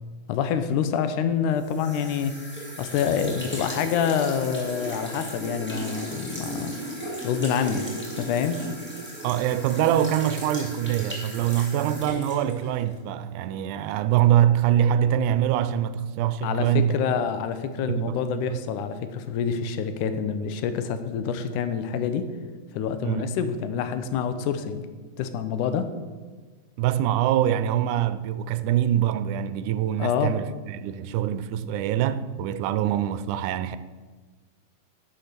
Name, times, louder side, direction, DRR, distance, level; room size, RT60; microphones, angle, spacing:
voice 1, 0.3-2.3 2.8-6.8 7.2-7.9 8.2-8.6 16.4-22.2 22.7-24.8 25.2-25.9 30.0-30.3, left 7 dB, 80° left, 2.2 m, -27 dB
sound 1, 1.6-13.0, right 1 dB, 5° left, 1.9 m, -36 dB
voice 2, 9.2-17.0 17.9-18.2 18.5-18.6 23.0-23.3 26.8-33.8, right 11 dB, 85° right, 2.0 m, -24 dB
10.0 x 5.7 x 6.6 m
omnidirectional pair, 3.5 m